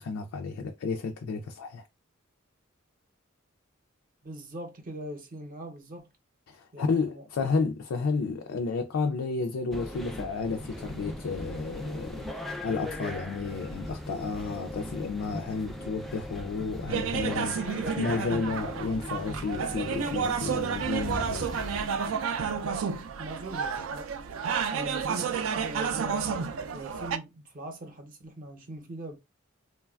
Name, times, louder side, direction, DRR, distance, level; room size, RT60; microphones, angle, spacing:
voice 1, 0.0-1.8 6.5-21.6, left 4 dB, 90° left, 0.4 m, -32 dB
voice 2, 4.2-6.1 6.7-7.2 23.2-24.1 24.7-26.3 26.7-29.2, right 1 dB, 45° right, 0.6 m, -41 dB
sound 1, 9.7-21.9, left 1 dB, ahead, 0.3 m, -39 dB
sound 2, 16.9-27.2, right 6 dB, 80° right, 0.4 m, -31 dB
3.0 x 2.2 x 2.3 m
head